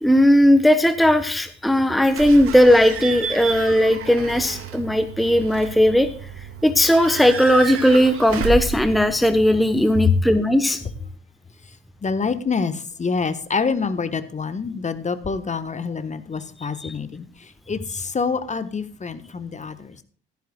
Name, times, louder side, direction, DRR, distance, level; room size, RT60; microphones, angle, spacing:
voice 1, 0.0-6.1 6.6-10.8 16.8-16.9, equal, ahead, 10 dB, 1.1 m, -17 dB
Slam / Squeak / Alarm, 2.0-10.0, right 5 dB, 45° right, 2.1 m, -32 dB
voice 2, 12.0-20.0, left 5 dB, 20° left, 11 dB, 1.3 m, -26 dB
16.5 x 13.0 x 2.4 m, 0.44 s
figure-of-eight pair, 60°, 32 cm